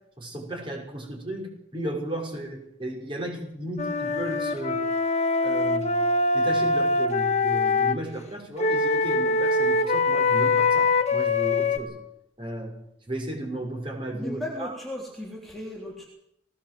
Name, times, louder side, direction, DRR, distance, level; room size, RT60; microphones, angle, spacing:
voice 1, 0.2-4.8 5.4-6.0 6.3-11.9 12.4-12.8 13.1-14.7, right 1 dB, 30° right, 1 dB, 6.1 m, -34 dB
Wind instrument woodwind instrument, 3.8-8.0 8.6-11.8, left 3 dB, 40° left, 1.6 m, -23 dB
voice 2, 14.1-16.1, left 1 dB, ahead, -3 dB, 3.5 m, -36 dB
19.5 x 18.0 x 7.8 m, 0.76 s
head